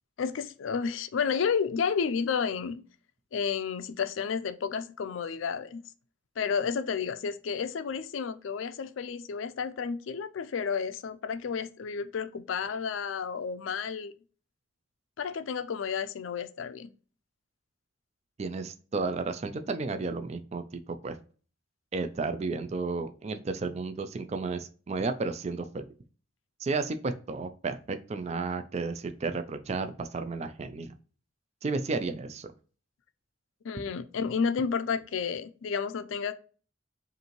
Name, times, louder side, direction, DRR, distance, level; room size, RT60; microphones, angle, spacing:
voice 1, 0.2-2.8 3.3-5.8 6.4-14.1 15.2-16.9 33.6-36.3, left 6 dB, 90° left, 0.4 m, -31 dB
voice 2, 18.4-21.2 21.9-25.8 26.6-30.9 31.6-32.5, right 3 dB, 35° right, 0.4 m, -33 dB
5.2 x 2.6 x 3.0 m
head